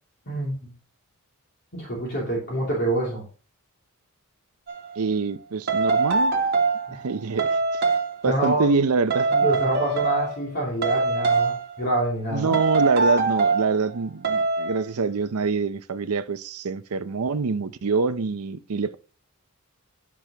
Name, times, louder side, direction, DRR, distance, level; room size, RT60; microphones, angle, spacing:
voice 1, 0.3-0.7 1.7-3.2 6.9-7.0 8.3-8.8 9.3-12.6, right 1 dB, 50° left, 2.8 m, -27 dB
sound 1, 4.7-4.9 5.7-6.9 7.4-8.1 9.1-10.5 10.8-11.7 12.5-13.7 14.2-14.8, right 3 dB, 45° right, 1.3 m, -23 dB
voice 2, 5.0-6.3 6.9-7.6 8.2-9.5 12.3-18.9, right 4 dB, 80° right, 0.6 m, -25 dB
10.0 x 6.0 x 2.9 m
head